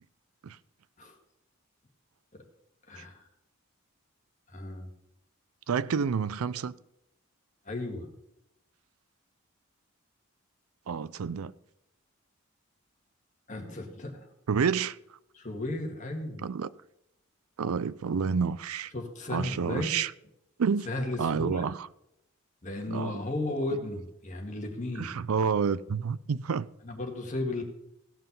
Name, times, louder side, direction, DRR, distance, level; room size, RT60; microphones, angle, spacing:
voice 1, 2.9-3.3 4.5-4.9 7.7-8.1 13.5-14.3 15.3-16.4 18.9-20.0 20.9-21.7 22.6-25.1 26.8-27.6, left 2 dB, 35° left, 1.9 m, -34 dB
voice 2, 5.7-6.7 10.9-11.5 14.5-15.0 16.4-16.7 17.6-18.9 19.3-20.1 20.6-20.9 21.2-21.9 22.9-23.2 25.0-26.7, right 6 dB, 85° right, 0.4 m, -29 dB
16.5 x 5.7 x 5.4 m
head